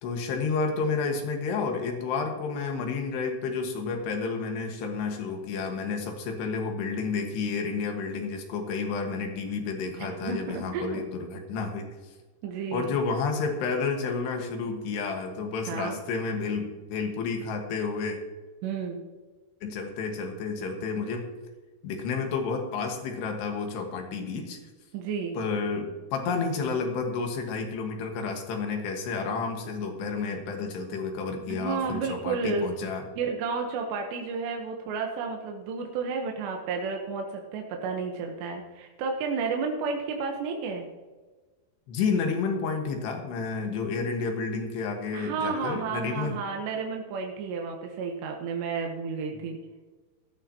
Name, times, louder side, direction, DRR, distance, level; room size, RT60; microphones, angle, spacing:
voice 1, 0.0-11.9 12.7-18.2 19.6-21.2 21.8-24.6 25.4-33.1 41.9-46.4, left 4 dB, 80° left, 3 dB, 3.6 m, -30 dB
voice 2, 10.0-11.0 12.4-13.0 15.7-16.0 18.6-19.0 24.9-25.4 31.5-32.7 33.2-40.9 45.1-49.6, right 5 dB, 85° right, 2 dB, 3.3 m, -32 dB
15.0 x 13.5 x 2.9 m, 1.3 s
omnidirectional pair, 4.8 m